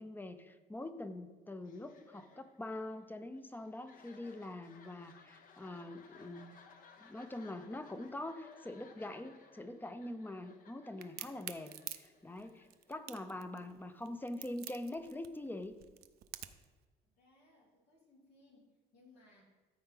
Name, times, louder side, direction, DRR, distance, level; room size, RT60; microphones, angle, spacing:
voice 1, 0.0-6.6 7.0-15.8, left 1 dB, 10° left, 10 dB, 0.6 m, -44 dB
sound 1, 1.6-13.3, left 5 dB, 55° left, 0.9 m, -61 dB
Crack, 11.0-16.7, right 13 dB, 65° right, 0.5 m, -47 dB
voice 2, 17.1-19.4, left 2 dB, 80° left, -3 dB, 2.9 m, -66 dB
13.5 x 4.6 x 3.8 m, 1.2 s
cardioid pair, 110°, 17 cm